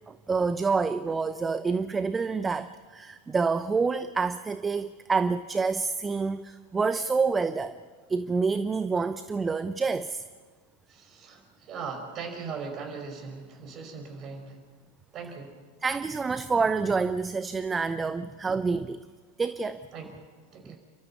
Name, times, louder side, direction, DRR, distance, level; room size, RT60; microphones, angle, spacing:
voice 1, 0.0-7.7 8.1-10.2 15.8-19.0 19.4-19.8 20.6-20.8, right 4 dB, 15° right, 12 dB, 0.7 m, -27 dB
voice 2, 10.9-14.6 15.1-15.5 19.9-20.1 20.5-20.8, right 5 dB, 35° right, 4 dB, 5.6 m, -39 dB
30.0 x 13.5 x 8.3 m, 1.5 s
figure-of-eight pair, 85°, 0 cm